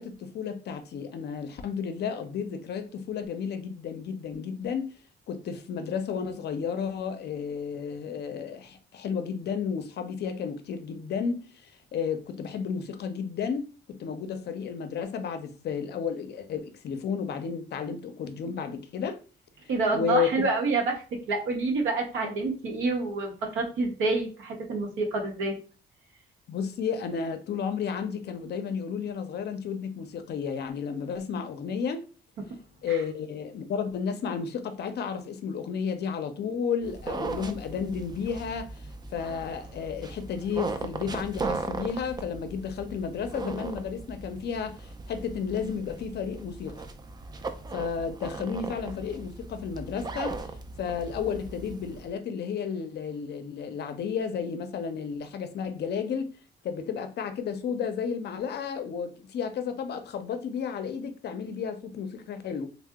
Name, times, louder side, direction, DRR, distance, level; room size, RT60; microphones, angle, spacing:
voice 1, 0.0-4.9 5.3-19.2 19.9-20.5 26.5-32.1 32.8-46.8 47.7-50.4 50.8-56.3 56.6-62.7, left 6 dB, 60° left, 0.5 m, -32 dB
voice 2, 19.7-25.5 32.9-33.0, right 3 dB, 85° right, 0.8 m, -28 dB
sound 1, 36.8-52.1, right 3 dB, 20° right, 0.4 m, -38 dB
2.7 x 2.0 x 3.4 m
cardioid pair, 90°, 20 cm